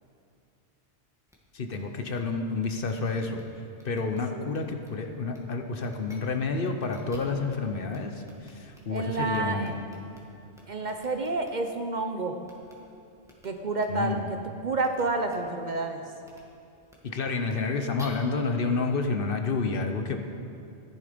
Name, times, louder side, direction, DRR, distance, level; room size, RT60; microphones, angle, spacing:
sound 1, 1.3-1.4 1.7-1.8 2.0-2.2 2.6-3.4 3.7-4.2 4.5-4.9 5.3-5.4 5.8-6.2 6.6-7.6 7.9-8.0 8.2-10.2 10.5-11.5 12.4-12.7 13.2-13.5 13.8-13.9 14.8-15.0 15.3-15.4 16.2-16.4 16.8-16.9 17.4-18.0, equal, 5° right, 1.8 m, -53 dB
voice 1, 1.5-3.4 3.8-9.7 13.9-14.3 17.0-20.2, left 4 dB, 55° left, 5 dB, 1.0 m, -29 dB
voice 2, 8.9-9.7 10.7-12.4 13.4-16.0, right 3 dB, 45° right, 5 dB, 0.8 m, -29 dB
14.0 x 10.5 x 5.1 m, 2.6 s
omnidirectional pair, 1.1 m